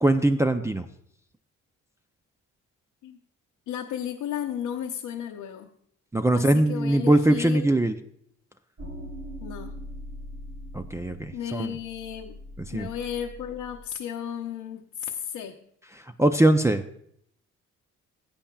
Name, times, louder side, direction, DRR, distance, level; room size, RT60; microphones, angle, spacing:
voice 1, 0.0-0.9 6.1-8.0 10.7-11.7 12.7-12.9 16.2-16.8, right 1 dB, 10° right, 4 dB, 0.5 m, -21 dB
voice 2, 3.7-5.7 6.3-7.7 9.4-9.8 11.3-12.4 12.7-15.6, left 9 dB, 80° left, 0 dB, 0.8 m, -34 dB
sound 1, 8.8-13.9, equal, 50° right, 4.5 m, -41 dB
15.5 x 8.6 x 2.3 m, 0.68 s
cardioid pair, 90°, 30 cm